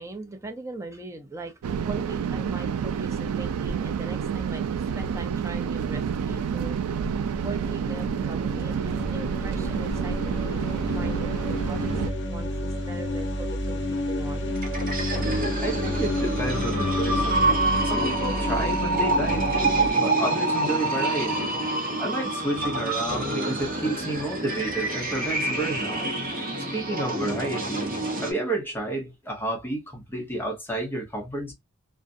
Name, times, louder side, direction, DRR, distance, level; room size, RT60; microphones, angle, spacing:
voice 1, 0.0-4.6 4.9-6.9 7.4-14.6, right 2 dB, 15° right, 0.5 m, -40 dB
sound 1, 1.6-12.1, right 7 dB, 80° right, 0.3 m, -29 dB
sound 2, 5.7-19.9, left 1 dB, 55° left, 0.6 m, -30 dB
sound 3, 14.5-28.3, right 2 dB, 40° right, 0.8 m, -27 dB
voice 2, 15.6-17.5 17.8-21.6 22.0-26.1 26.6-27.9 28.2-31.5, right 1 dB, 10° left, 0.9 m, -31 dB
2.4 x 2.2 x 2.5 m
head